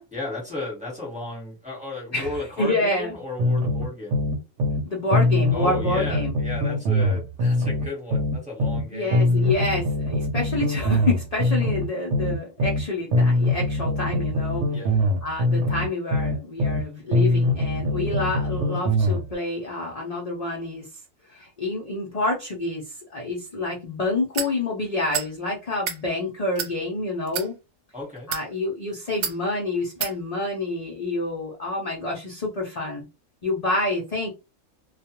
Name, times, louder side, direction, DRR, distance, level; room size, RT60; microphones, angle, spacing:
voice 1, 0.1-4.2 5.5-9.6 14.7-15.0 27.9-28.3, left 2 dB, 5° right, -4 dB, 1.0 m, -34 dB
voice 2, 2.1-3.2 4.8-6.3 8.9-14.7 15.2-20.9 21.3-27.6 28.3-33.0 33.4-34.3, left 2 dB, 45° left, -2 dB, 0.5 m, -28 dB
sound 1, 3.4-4.8 5.1-8.8 9.1-12.8 13.1-16.8 17.1-19.2, left 1 dB, 65° right, 0.9 m, -23 dB
sound 2, 24.3-24.5 25.1-25.3 25.7-26.0 26.6-26.7 27.3-27.5 28.2-28.5 29.2-29.4 30.0-30.1, right 8 dB, 85° right, 1.0 m, -29 dB
2.3 x 2.3 x 2.9 m, 0.27 s
omnidirectional pair, 1.5 m